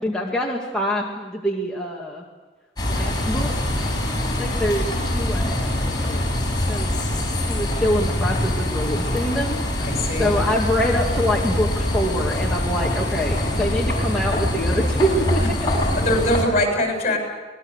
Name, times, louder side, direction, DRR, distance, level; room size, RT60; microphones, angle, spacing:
voice 1, 0.0-2.2 2.8-3.6 4.4-6.3 6.7-6.9 7.3-9.6 10.2-15.8, equal, 5° left, -4 dB, 2.4 m, -25 dB
sound 1, 2.8-16.4, left 1 dB, 25° left, 7.1 m, -24 dB
voice 2, 9.8-10.3 15.4-15.5 15.9-17.2, left 1 dB, 40° left, 3 dB, 7.7 m, -22 dB
25.0 x 20.5 x 8.2 m, 1.3 s
head